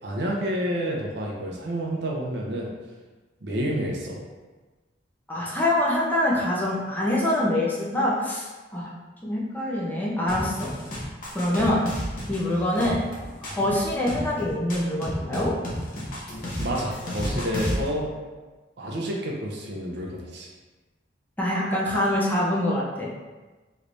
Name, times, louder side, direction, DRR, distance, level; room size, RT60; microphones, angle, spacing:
voice 1, 0.0-2.7 3.4-4.2 16.6-18.1 18.8-20.5, equal, 65° right, -1 dB, 0.6 m, -29 dB
voice 2, 5.3-8.5 8.7-8.9 9.2-10.7 11.3-11.8 12.3-13.0 13.4-15.5 21.4-23.2, left 1 dB, 10° left, -6 dB, 0.5 m, -25 dB
sound 1, 10.3-17.9, equal, 45° left, 0.8 m, -32 dB
3.2 x 3.1 x 2.6 m, 1.3 s
head